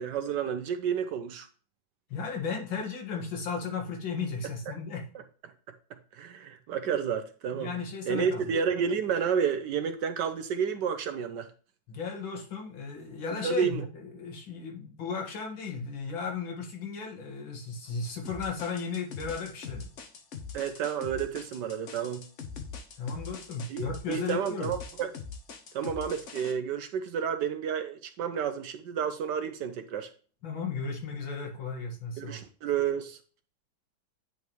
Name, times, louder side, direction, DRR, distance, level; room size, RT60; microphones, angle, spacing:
voice 1, 0.0-1.5 6.1-7.7 8.1-11.5 13.4-13.8 20.5-22.2 23.7-25.1 25.7-30.1 32.2-33.2, right 7 dB, 70° right, 10 dB, 1.2 m, -30 dB
voice 2, 2.1-5.1 7.5-8.4 11.9-19.9 23.0-24.7 30.4-32.4, left 5 dB, 75° left, 1 dB, 2.4 m, -35 dB
sound 1, 18.3-26.5, left 6 dB, 50° left, 1.0 m, -42 dB
9.3 x 5.3 x 3.0 m, 0.39 s
omnidirectional pair, 2.2 m